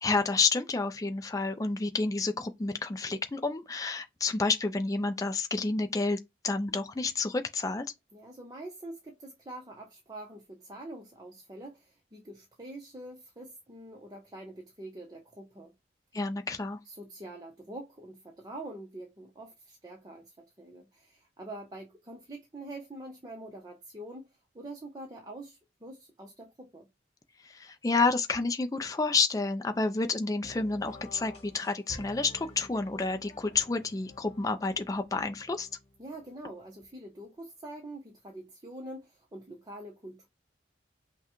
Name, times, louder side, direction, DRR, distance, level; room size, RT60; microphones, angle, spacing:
voice 1, 0.0-6.2 6.4-7.9 16.1-16.8 27.4-35.7, left 3 dB, 20° left, 0.4 m, -29 dB
voice 2, 8.1-15.7 16.8-26.9 36.0-40.3, right 1 dB, 20° right, 0.7 m, -45 dB
sound 1, 30.4-36.9, left 1 dB, 35° left, 1.3 m, -51 dB
5.7 x 2.2 x 3.0 m
head